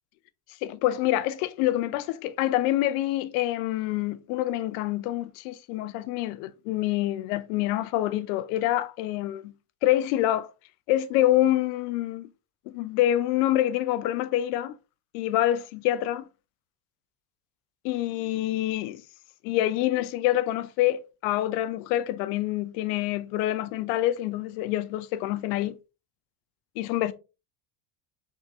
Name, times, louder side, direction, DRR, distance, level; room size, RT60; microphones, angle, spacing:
voice 1, 0.6-9.5 9.8-10.5 10.9-12.3 12.7-14.7 15.1-16.2 17.8-19.0 19.4-25.7 26.8-27.1, left 14 dB, 70° left, 0.6 m, -26 dB
4.4 x 3.6 x 2.4 m
hypercardioid pair, 80°, 47 cm